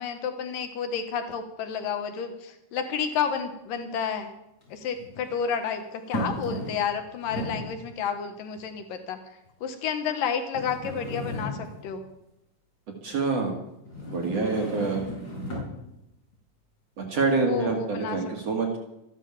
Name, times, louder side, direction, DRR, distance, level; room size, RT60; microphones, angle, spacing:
voice 1, 0.0-4.4 4.7-12.1 17.4-18.2 18.5-18.6, left 7 dB, 85° left, 7 dB, 3.0 m, -31 dB
sound 1, 3.1-3.2 4.6-5.3 6.1-7.0 7.2-7.8 8.6-8.7 9.5-9.6 10.5-12.0 13.9-15.8, equal, 25° left, 5.9 m, -34 dB
voice 2, 13.0-13.5 14.1-15.0 17.0-18.8, right 4 dB, 50° right, 2 dB, 3.0 m, -26 dB
14.5 x 12.0 x 7.2 m, 0.87 s
omnidirectional pair, 3.9 m